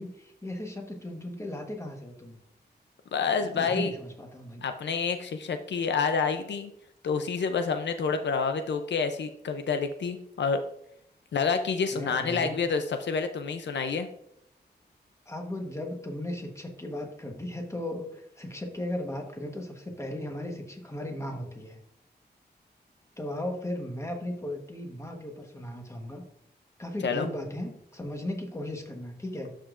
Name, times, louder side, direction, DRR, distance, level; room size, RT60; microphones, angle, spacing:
voice 1, 0.0-2.4 3.4-4.6 11.9-12.6 15.3-21.8 23.2-26.2 26.8-29.5, left 1 dB, 15° left, 3 dB, 1.2 m, -36 dB
voice 2, 3.1-3.9 4.6-6.7 7.0-10.6 11.3-14.1 27.0-27.3, left 5 dB, 90° left, 8 dB, 0.5 m, -28 dB
12.5 x 5.0 x 2.5 m, 0.74 s
wide cardioid pair, 140°, 18 cm